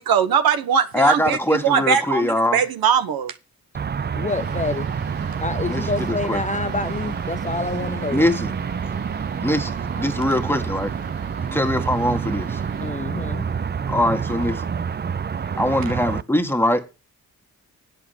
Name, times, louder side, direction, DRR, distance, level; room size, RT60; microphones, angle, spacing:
voice 1, 0.0-3.3, right 7 dB, 85° right, 1.2 m, -20 dB
voice 2, 0.9-2.6 5.7-6.4 8.1-8.5 9.4-10.9 11.5-12.6 13.9-14.7 15.6-16.9, left 1 dB, 5° left, 1.7 m, -22 dB
sound 1, 3.7-16.2, right 6 dB, 30° right, 0.5 m, -28 dB
voice 3, 4.2-4.9 5.4-8.2 12.8-13.5, left 3 dB, 20° left, 0.5 m, -27 dB
sound 2, 4.3-12.9, right 5 dB, 70° right, 1.7 m, -38 dB
8.5 x 6.7 x 7.3 m
cardioid pair, 60°, 35 cm